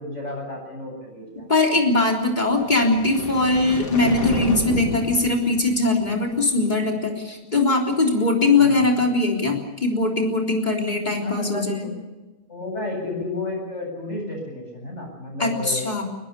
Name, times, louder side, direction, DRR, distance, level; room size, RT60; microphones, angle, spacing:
voice 1, 0.0-1.5 8.6-9.0 11.2-11.9 12.5-15.8, left 2 dB, 45° left, 1 dB, 8.3 m, -32 dB
voice 2, 1.5-11.9 15.4-16.0, left 2 dB, 25° left, 0 dB, 3.9 m, -21 dB
sound 1, 2.4-6.6, left 2 dB, 60° left, 2.7 m, -30 dB
23.5 x 20.0 x 6.9 m, 1.1 s
omnidirectional pair, 1.7 m